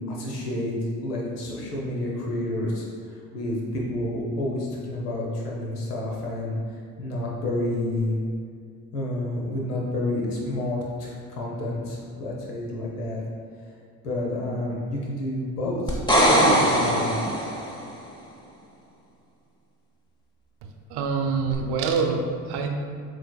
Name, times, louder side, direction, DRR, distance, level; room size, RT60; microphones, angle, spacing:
voice 1, 0.1-0.7 1.0-8.2 8.9-13.2 14.0-17.2, left 1 dB, 85° left, -3 dB, 1.0 m, -29 dB
sound 1, 15.9-17.8 21.5-21.6, equal, 10° left, 0.9 m, -20 dB
voice 2, 20.9-22.7, right 5 dB, 60° right, 4 dB, 0.7 m, -25 dB
7.1 x 3.2 x 2.3 m, 2.1 s
hypercardioid pair, 55°, 45 cm